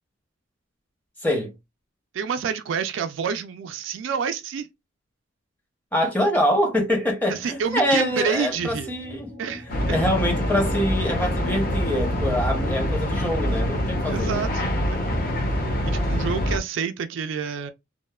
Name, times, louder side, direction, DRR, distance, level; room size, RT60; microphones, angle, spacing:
voice 1, 1.2-1.5 5.9-9.3 9.9-14.4, equal, 10° left, 0.7 m, -24 dB
voice 2, 2.1-4.7 7.3-8.9 9.4-10.0 14.1-15.1 15.8-17.7, right 6 dB, 70° right, 0.3 m, -28 dB
sound 1, 7.3-14.7, left 1 dB, 65° left, 1.4 m, -40 dB
sound 2, 9.7-16.6, equal, 45° left, 0.7 m, -25 dB
2.9 x 2.0 x 2.2 m
head